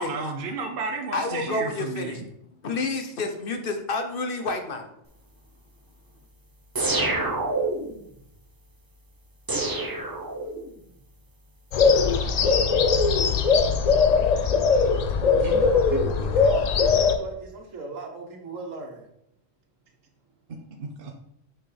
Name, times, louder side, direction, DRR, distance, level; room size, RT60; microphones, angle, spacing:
voice 1, 0.0-2.3 20.5-21.1, right 4 dB, 55° right, 3 dB, 0.8 m, -33 dB
voice 2, 1.1-2.2 2.6-4.9, left 3 dB, 50° left, 5 dB, 1.0 m, -29 dB
sound 1, 6.8-8.0 9.5-10.8, right 2 dB, 25° right, 0.6 m, -27 dB
sound 2, 11.7-17.2, left 5 dB, 75° left, 0.3 m, -20 dB
voice 3, 14.6-19.0, right 3 dB, 90° right, 2 dB, 1.5 m, -37 dB
6.0 x 5.7 x 3.3 m, 0.77 s
omnidirectional pair, 1.3 m